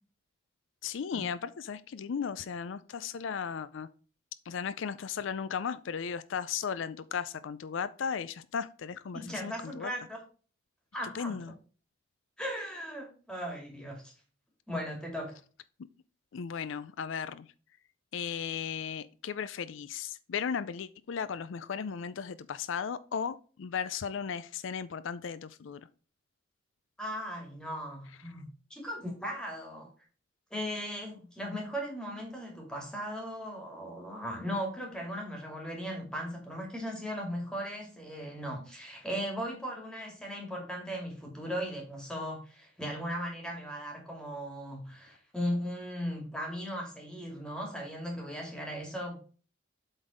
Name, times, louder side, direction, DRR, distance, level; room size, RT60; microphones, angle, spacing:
voice 1, 0.8-3.9 4.5-9.9 11.1-11.5 16.3-17.5 18.1-25.8, left 7 dB, 75° left, 15 dB, 0.4 m, -36 dB
voice 2, 9.1-10.2 10.9-11.4 12.4-14.1 14.7-15.4 27.0-29.9 30.5-49.2, equal, 5° left, 0 dB, 2.3 m, -37 dB
8.0 x 3.9 x 4.9 m, 0.38 s
head